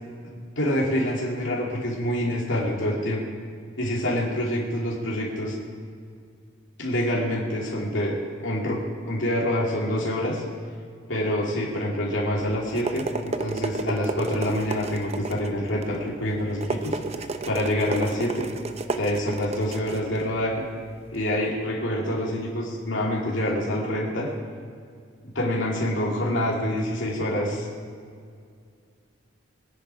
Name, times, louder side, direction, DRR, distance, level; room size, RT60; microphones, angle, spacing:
voice 1, 0.6-3.2 3.8-5.5 6.8-10.4 11.1-17.0 17.5-18.5 19.0-20.6 21.1-24.3 25.3-27.7, equal, 70° left, -3 dB, 2.7 m, -26 dB
sound 1, 12.4-21.2, right 3 dB, 35° right, 0.7 m, -33 dB
21.5 x 10.0 x 4.8 m, 2.2 s
head